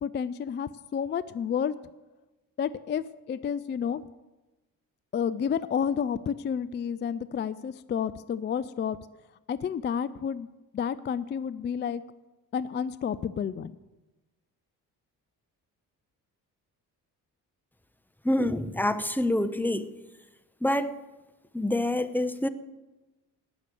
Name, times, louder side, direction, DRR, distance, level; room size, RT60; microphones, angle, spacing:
voice 1, 0.0-1.7 2.6-4.0 5.1-9.0 9.5-10.5 10.7-12.0 12.5-13.7, left 7 dB, 25° left, 16 dB, 0.4 m, -30 dB
voice 2, 18.2-19.9 20.6-20.9 21.5-22.5, left 1 dB, 5° left, 11 dB, 0.9 m, -26 dB
18.5 x 6.6 x 7.8 m, 1.1 s
figure-of-eight pair, 40°, 50 cm